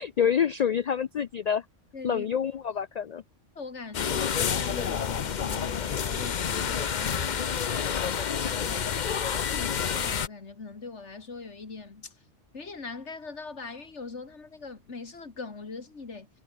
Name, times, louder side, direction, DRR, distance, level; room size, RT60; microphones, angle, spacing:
voice 1, 0.0-1.6 2.0-3.2, left 8 dB, 80° left, 0.3 m, -27 dB
voice 2, 1.9-2.3 3.6-12.1 12.5-16.3, left 4 dB, 65° left, 2.6 m, -42 dB
sound 1, 3.9-10.3, left 7 dB, 45° left, 0.8 m, -29 dB
omnidirectional pair, 1.3 m